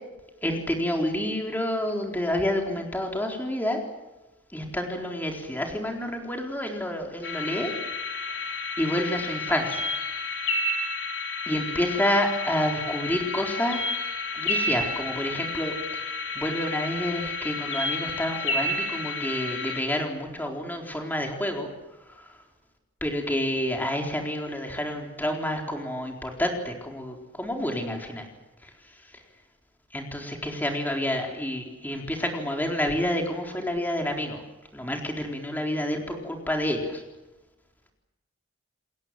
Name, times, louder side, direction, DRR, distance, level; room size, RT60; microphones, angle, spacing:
voice 1, 0.4-3.8 4.5-7.7 8.8-9.9 11.5-13.8 14.3-16.0 16.4-21.7 23.0-28.2 29.9-34.4 34.7-37.0, left 1 dB, 10° left, 2 dB, 4.0 m, -29 dB
sound 1, 7.2-19.8, left 2 dB, 60° left, 4.2 m, -31 dB
29.0 x 20.5 x 7.7 m, 1.1 s
head